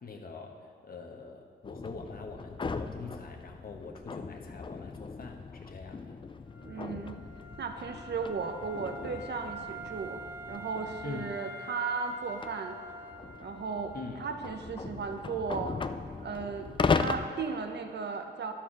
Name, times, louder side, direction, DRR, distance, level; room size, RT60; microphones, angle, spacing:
voice 1, 0.0-6.2 11.0-11.3 13.9-14.2, left 4 dB, 55° left, 2 dB, 1.1 m, -44 dB
G. Cordaro Braies reel, 1.6-11.3 12.1-17.3, left 4 dB, 25° left, 0.4 m, -37 dB
Wind instrument woodwind instrument, 6.5-14.3, right 1 dB, 10° right, 1.4 m, -46 dB
voice 2, 6.6-7.2 7.6-10.2 10.5-12.8 13.4-15.8 16.2-18.5, right 5 dB, 65° right, 6 dB, 0.8 m, -36 dB
11.5 x 4.6 x 6.1 m, 2.4 s
cardioid pair, 90°, 19 cm